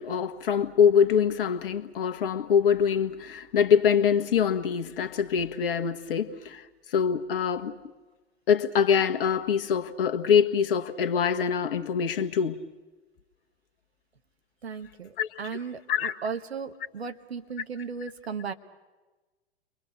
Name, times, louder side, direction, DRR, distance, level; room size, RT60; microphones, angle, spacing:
voice 1, 0.0-7.8 8.5-12.6 15.2-15.5 15.9-16.2, left 7 dB, 60° left, 1.5 m, -24 dB
voice 2, 14.6-18.5, right 6 dB, 75° right, 1.5 m, -36 dB
29.5 x 23.5 x 6.6 m
figure-of-eight pair, 95°, 31 cm